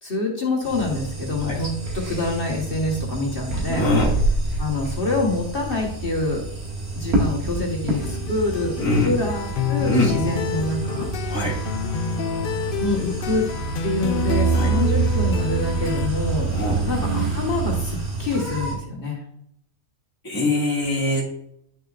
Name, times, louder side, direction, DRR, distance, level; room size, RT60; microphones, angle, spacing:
voice 1, 0.0-3.9 4.6-6.4 6.9-8.7 9.0-11.1 12.8-13.5 13.8-16.5 16.9-19.2, left 2 dB, 40° left, -1 dB, 1.6 m, -26 dB
sound 1, 0.6-18.7, right 4 dB, 85° right, 2.6 m, -27 dB
voice 2, 3.7-4.1 8.8-9.1 9.8-10.1 11.3-11.6 14.5-14.7 16.5-16.8 20.2-21.2, left 2 dB, 15° left, -8 dB, 2.1 m, -22 dB
sound 2, 8.0-16.1, left 7 dB, 90° left, 0.4 m, -29 dB
10.5 x 6.6 x 2.5 m, 0.73 s
omnidirectional pair, 1.5 m